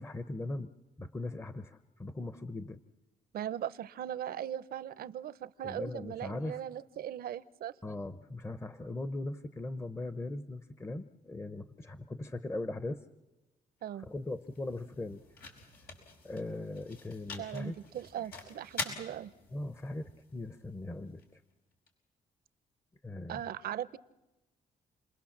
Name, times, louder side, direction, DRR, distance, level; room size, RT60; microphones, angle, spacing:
voice 1, 0.0-2.8 5.6-6.6 7.8-13.0 13.9-15.2 16.2-17.8 19.5-21.4 23.0-23.4, left 2 dB, 15° left, 12 dB, 0.8 m, -39 dB
voice 2, 3.3-7.7 13.8-14.1 17.4-19.3 23.3-24.0, right 10 dB, 80° right, 17 dB, 0.8 m, -39 dB
sound 1, 13.8-21.9, left 3 dB, 90° left, 5.4 m, -46 dB
29.5 x 21.0 x 7.3 m, 1.0 s
cardioid pair, 115°, 15 cm